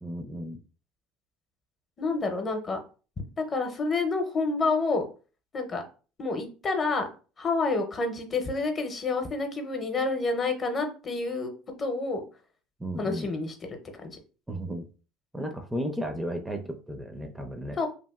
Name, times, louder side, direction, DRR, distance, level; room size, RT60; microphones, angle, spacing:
voice 1, 0.0-0.6 12.8-13.3 14.5-14.9 15.3-17.8, equal, 10° right, 6 dB, 0.4 m, -34 dB
voice 2, 2.0-2.8 3.5-5.1 5.5-5.8 6.2-7.1 7.4-11.5 11.8-12.3 13.0-13.5 14.0-14.2 17.8-17.9, left 3 dB, 35° left, 5 dB, 0.7 m, -28 dB
2.8 x 2.5 x 2.3 m, 0.36 s
supercardioid pair, 90°, 0 cm